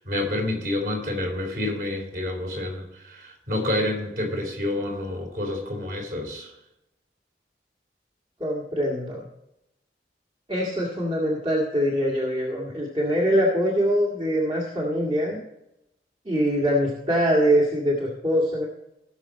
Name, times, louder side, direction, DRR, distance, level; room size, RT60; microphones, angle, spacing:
voice 1, 0.0-6.5, left 1 dB, 55° right, 0 dB, 3.9 m, -28 dB
voice 2, 8.4-9.2 10.5-15.4 16.2-18.7, equal, 30° right, -4 dB, 1.8 m, -23 dB
17.0 x 6.7 x 4.2 m, 0.86 s
head